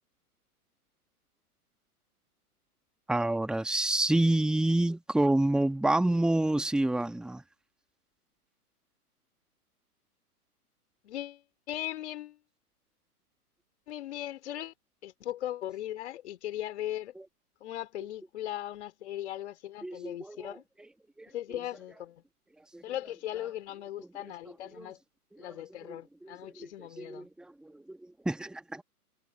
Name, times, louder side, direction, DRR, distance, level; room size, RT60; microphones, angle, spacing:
voice 1, 3.1-7.4 19.8-20.6 21.2-21.3 22.7-22.8 24.2-24.3 24.7-24.9 25.3-25.5 25.8-26.0 26.2-28.8, right 1 dB, ahead, 2.0 m, -28 dB
voice 2, 11.0-12.4 13.9-14.7 15.0-17.1 17.6-20.6 21.3-22.2 22.8-25.0 25.4-27.3, left 13 dB, 45° left, 4.5 m, -38 dB
figure-of-eight pair, 120°, 46 cm